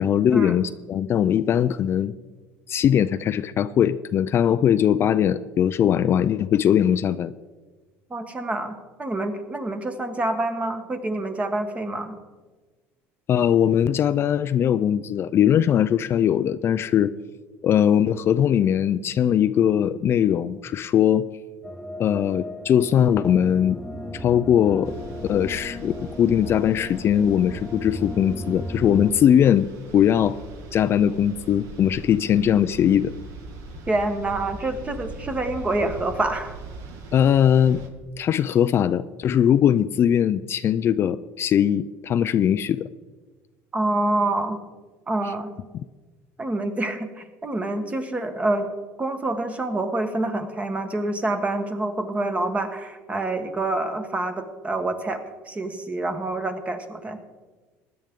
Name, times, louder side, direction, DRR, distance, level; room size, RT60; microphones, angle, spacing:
voice 1, 0.0-2.1 2.7-7.3 13.3-17.1 17.6-21.3 22.0-23.8 24.1-24.9 25.2-29.7 29.9-30.4 30.7-33.1 37.1-37.8 38.2-42.9, left 9 dB, 40° left, 13 dB, 0.4 m, -20 dB
voice 2, 8.1-12.1 33.9-36.6 43.7-44.6 45.1-45.5 46.4-48.7 49.0-55.2 55.5-57.2, right 2 dB, 20° right, 7 dB, 1.3 m, -27 dB
sound 1, 21.6-29.1, equal, 5° left, 0.9 m, -35 dB
sound 2, 24.8-37.9, right 2 dB, 60° right, 1.7 m, -41 dB
16.0 x 10.5 x 3.7 m, 1.3 s
supercardioid pair, 110°, 6 cm